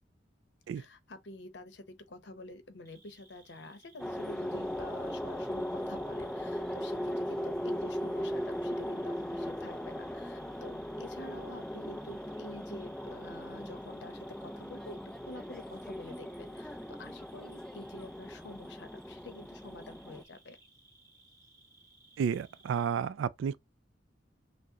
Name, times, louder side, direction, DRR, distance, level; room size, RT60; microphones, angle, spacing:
voice 1, 0.7-15.0 15.3-20.6, left 2 dB, 70° left, 0.8 m, -48 dB
Cricket, 2.8-22.8, right 2 dB, 20° right, 1.3 m, -62 dB
sound 1, 4.0-20.2, equal, 5° left, 0.4 m, -38 dB
voice 2, 22.2-23.6, right 7 dB, 90° right, 0.3 m, -31 dB
6.1 x 2.1 x 2.8 m
head